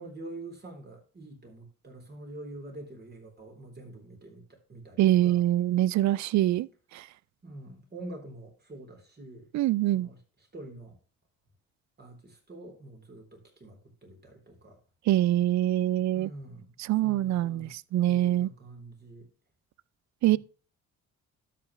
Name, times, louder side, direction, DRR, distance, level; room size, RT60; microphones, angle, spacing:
voice 1, 0.0-5.4 7.4-9.5 9.9-10.2 10.5-11.0 12.0-14.8 16.1-17.7 18.1-19.3 20.3-20.4, right 2 dB, 35° right, 3.8 m, -46 dB
voice 2, 5.0-6.7 6.9-7.1 9.5-10.1 15.1-16.3 16.9-18.5 20.2-20.4, right 13 dB, 70° right, 0.5 m, -24 dB
12.5 x 5.9 x 3.2 m
cardioid pair, 90°, 30 cm